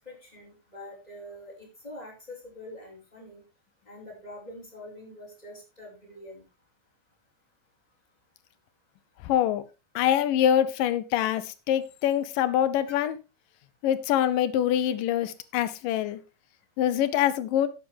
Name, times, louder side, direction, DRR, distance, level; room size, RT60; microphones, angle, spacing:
voice 1, 0.0-3.4 3.9-6.4 12.9-13.0, left 1 dB, 10° left, 4.9 m, -45 dB
voice 2, 9.2-9.6 10.0-13.2 13.8-16.2 16.8-17.7, left 10 dB, 75° left, 2.4 m, -24 dB
11.5 x 8.9 x 3.5 m
omnidirectional pair, 4.1 m